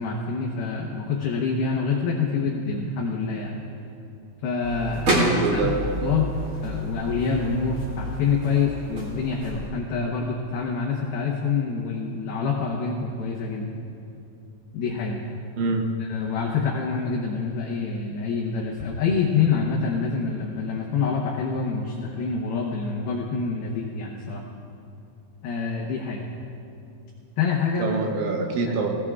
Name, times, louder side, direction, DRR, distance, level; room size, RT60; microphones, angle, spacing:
voice 1, 0.0-3.6 4.4-6.3 6.6-13.7 14.7-15.2 16.0-24.4 25.4-26.3 27.4-27.9 28.7-28.8, left 5 dB, 80° left, -2 dB, 2.2 m, -26 dB
sound 1, 4.6-9.7, right 1 dB, 35° right, 2.4 m, -29 dB
voice 2, 5.1-5.8 15.6-15.9 27.8-29.0, right 4 dB, 75° right, 3 dB, 3.0 m, -25 dB
20.0 x 17.5 x 2.4 m, 2.7 s
omnidirectional pair, 5.9 m